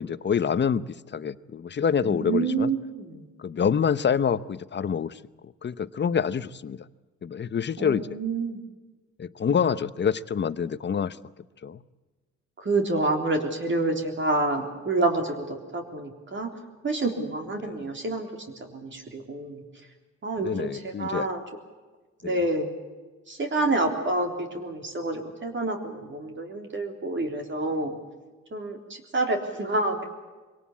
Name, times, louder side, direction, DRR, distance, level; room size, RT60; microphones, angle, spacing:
voice 1, 0.0-2.7 3.4-6.9 7.2-8.2 9.2-11.2 11.6-11.8 17.6-17.9 20.4-21.3 22.2-22.5, left 7 dB, 35° left, 15 dB, 0.9 m, -27 dB
voice 2, 2.1-3.2 7.8-8.6 12.6-16.5 16.8-18.3 18.6-19.6 20.2-21.4 22.2-22.7 23.3-28.0 28.5-30.0, right 2 dB, 40° right, 3 dB, 3.6 m, -28 dB
24.0 x 18.0 x 8.5 m, 1.3 s
cardioid pair, 90°, 30 cm